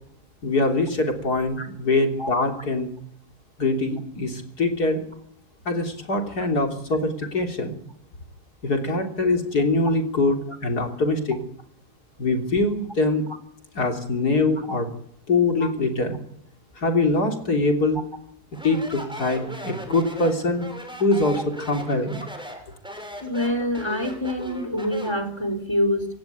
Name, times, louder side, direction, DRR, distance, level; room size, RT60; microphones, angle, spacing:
voice 1, 0.4-2.9 3.6-5.0 5.7-7.7 8.6-11.4 12.2-13.2 13.8-14.9 15.3-16.2 16.8-18.0 18.6-20.7 21.0-22.2, left 2 dB, 70° left, 4 dB, 3.8 m, -23 dB
Speech, 18.5-25.3, equal, 5° right, 6.3 m, -38 dB
voice 2, 23.2-26.1, left 1 dB, 15° left, 9 dB, 3.4 m, -26 dB
26.0 x 18.0 x 9.4 m, 0.71 s
omnidirectional pair, 1.8 m